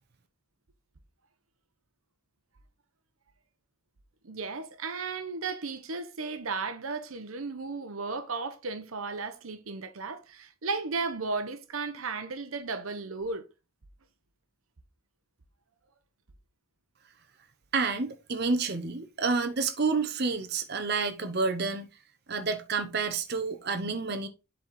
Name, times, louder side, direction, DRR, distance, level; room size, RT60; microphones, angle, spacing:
voice 1, 4.2-13.5, right 4 dB, 80° right, 0.9 m, -35 dB
voice 2, 17.7-21.9 22.3-24.3, right 4 dB, 50° right, 0.9 m, -29 dB
7.6 x 4.3 x 4.2 m
head